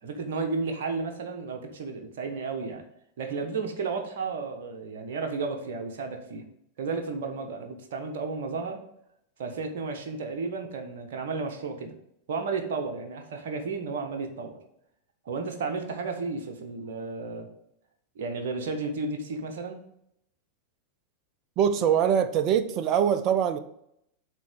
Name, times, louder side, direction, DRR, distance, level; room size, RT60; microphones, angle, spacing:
voice 1, 0.0-2.8 3.2-6.4 6.8-8.8 9.4-11.9 12.3-14.6 15.2-17.5 18.1-19.8, right 4 dB, 55° right, 4 dB, 1.0 m, -33 dB
voice 2, 21.6-23.6, right 8 dB, 35° right, 11 dB, 0.5 m, -23 dB
7.4 x 3.0 x 6.1 m, 0.75 s
figure-of-eight pair, 90°, 0 cm